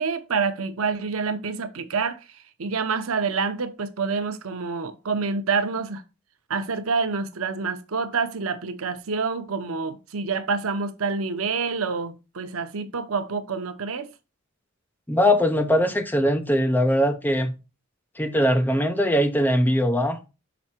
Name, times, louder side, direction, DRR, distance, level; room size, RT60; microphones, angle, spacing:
voice 1, 0.0-6.0 6.5-14.1, right 4 dB, 85° right, 0.8 m, -27 dB
voice 2, 15.1-17.5 18.2-20.2, equal, 10° left, 0.7 m, -21 dB
6.1 x 4.5 x 4.3 m
head